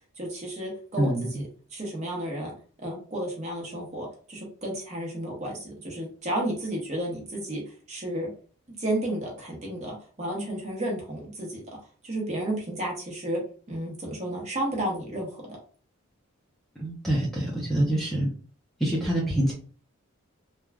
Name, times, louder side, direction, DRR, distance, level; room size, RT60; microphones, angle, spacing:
voice 1, 0.2-2.5 2.8-7.6 7.9-8.3 8.8-11.6 12.0-13.4 13.7-15.6, right 1 dB, 35° right, -1 dB, 0.9 m, -32 dB
voice 2, 1.0-1.4 16.8-18.3 18.8-19.5, right 1 dB, ahead, -5 dB, 0.6 m, -26 dB
3.2 x 2.3 x 2.3 m, 0.40 s
head